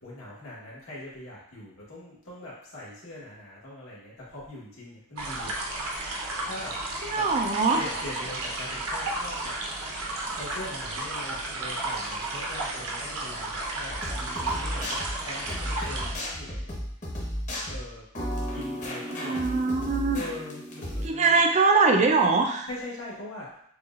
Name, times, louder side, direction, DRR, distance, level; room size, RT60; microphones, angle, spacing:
voice 1, 0.0-5.6 6.4-6.7 7.1-7.3 7.7-9.9 10.2-16.7 17.6-18.0 18.5-19.5 20.1-21.4 22.7-23.6, left 1 dB, 70° left, -7 dB, 1.4 m, -41 dB
sound 1, 5.2-16.1, right 2 dB, 75° right, 0.8 m, -33 dB
voice 2, 7.0-7.8 19.1-20.2 21.0-22.7, right 4 dB, 30° right, 4 dB, 0.4 m, -22 dB
sound 2, 13.9-21.1, equal, 35° left, 1.0 m, -34 dB
6.6 x 2.4 x 2.4 m, 0.70 s
head